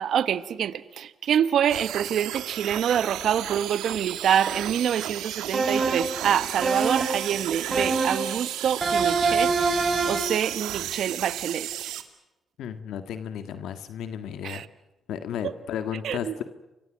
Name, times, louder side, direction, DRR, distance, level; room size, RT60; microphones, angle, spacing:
voice 1, 0.0-11.9 14.4-14.6 16.0-16.3, right 9 dB, 75° right, 1.2 m, -26 dB
sound 1, 1.7-12.0, right 12 dB, 90° right, 2.1 m, -34 dB
sound 2, 5.5-6.2 6.6-7.3 7.7-8.4 8.8-10.4, right 4 dB, 40° right, 5.1 m, -25 dB
voice 2, 12.6-14.6 15.1-16.4, left 9 dB, 80° left, 1.8 m, -33 dB
29.5 x 24.0 x 6.3 m
supercardioid pair, 60°, 0 cm